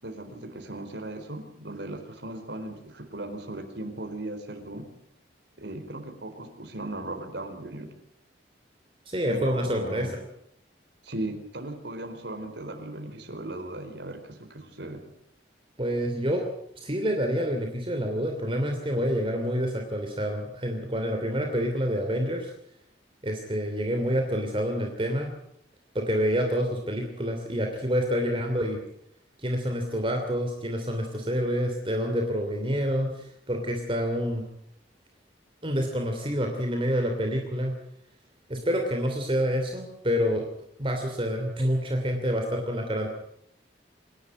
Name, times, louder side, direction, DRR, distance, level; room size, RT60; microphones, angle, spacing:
voice 1, 0.0-4.9 5.6-7.9 9.3-10.1 11.0-15.0, right 1 dB, 70° right, 5 dB, 4.4 m, -37 dB
voice 2, 9.1-10.1 15.8-16.4 16.8-22.5 23.2-25.3 25.9-28.8 29.4-34.4 35.6-37.7 38.5-40.5 40.8-43.1, equal, 30° right, 3 dB, 2.8 m, -27 dB
26.5 x 11.5 x 9.4 m, 0.74 s
head